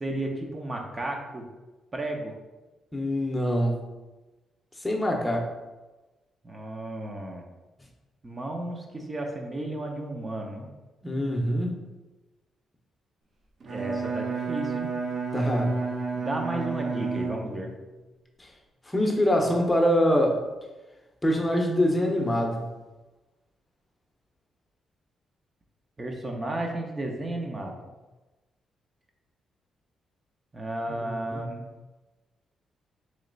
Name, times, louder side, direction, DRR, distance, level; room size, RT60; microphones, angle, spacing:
voice 1, 0.0-1.5 1.9-2.4 6.4-7.4 8.2-10.7 13.7-14.9 16.1-17.7 26.0-27.9 30.5-31.7, right 1 dB, 30° right, 1 dB, 0.7 m, -33 dB
voice 2, 2.9-3.8 4.8-5.5 11.0-11.7 15.3-15.9 18.9-20.4 21.2-22.7 31.0-31.4, equal, 15° left, 1 dB, 0.8 m, -24 dB
Bowed string instrument, 13.6-17.9, right 4 dB, 55° right, 0.7 m, -31 dB
3.2 x 2.9 x 3.9 m, 1.1 s
cardioid pair, 75°, 0 cm